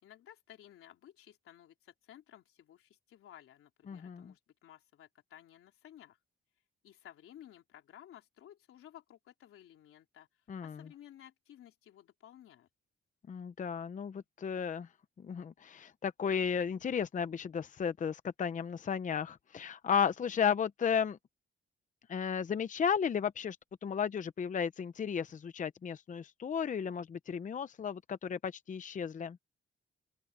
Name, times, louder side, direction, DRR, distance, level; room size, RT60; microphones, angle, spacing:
voice 1, 0.0-6.2 6.8-12.7, left 11 dB, 85° left, 3.7 m, -56 dB
voice 2, 3.9-4.3 10.5-10.8 13.3-14.9 15.2-21.2 22.1-23.6 23.8-29.4, left 7 dB, 35° left, 0.7 m, -34 dB
open air
cardioid pair, 120°, 21 cm